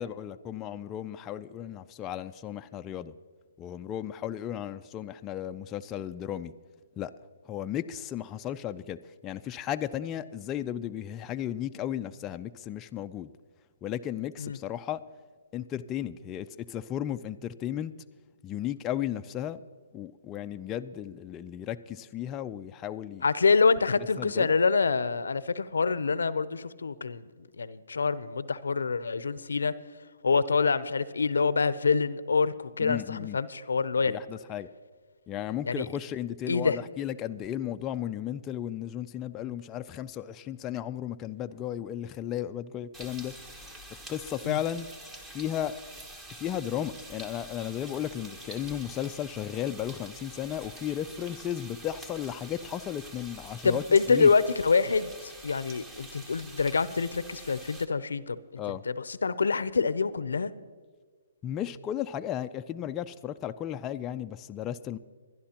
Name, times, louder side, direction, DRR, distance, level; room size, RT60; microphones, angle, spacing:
voice 1, 0.0-3.2 3.6-6.5 7.0-7.1 7.5-13.3 13.8-15.0 15.5-17.9 18.4-19.6 19.9-23.2 24.2-24.5 32.8-33.4 34.1-34.7 35.3-43.7 44.1-44.9 45.3-45.8 46.4-54.3 58.6-58.8 61.4-65.0, left 10 dB, 20° left, 8 dB, 0.3 m, -35 dB
voice 2, 23.2-27.3 27.6-29.7 30.2-34.2 35.6-35.9 36.5-36.8 44.4-44.6 53.6-60.5, left 4 dB, 85° left, 16 dB, 0.6 m, -26 dB
sound 1, 42.9-57.8, right 1 dB, 15° right, 1.0 m, -46 dB
22.5 x 11.0 x 2.9 m, 1.5 s
hypercardioid pair, 150°, 0 cm